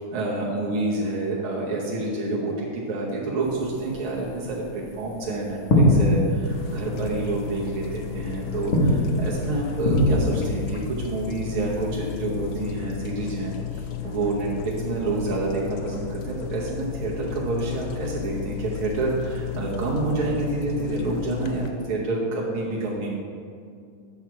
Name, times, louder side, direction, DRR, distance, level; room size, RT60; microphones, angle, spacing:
voice 1, 0.1-23.1, right 3 dB, 85° right, -5 dB, 2.0 m, -28 dB
sound 1, 3.4-12.7, left 1 dB, 50° left, 1.7 m, -25 dB
sound 2, 6.4-21.7, left 10 dB, 80° left, 0.8 m, -33 dB
9.2 x 6.0 x 4.6 m, 2.3 s
omnidirectional pair, 2.3 m